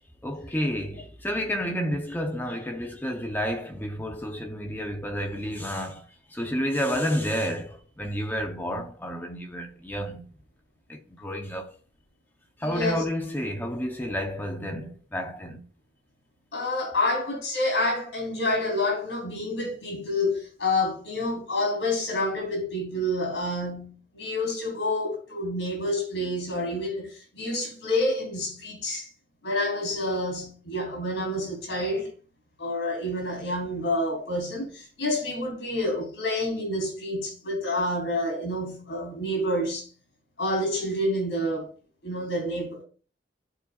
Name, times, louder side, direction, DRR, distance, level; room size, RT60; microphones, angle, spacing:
voice 1, 0.2-10.3 10.9-11.7 12.6-15.6, equal, 10° left, 0.7 m, -30 dB
voice 2, 12.6-13.0 16.5-29.1 29.4-32.1 32.6-39.8 40.4-41.7 42.0-42.8, left 1 dB, 70° left, 3.2 m, -28 dB
12.5 x 4.3 x 2.4 m
head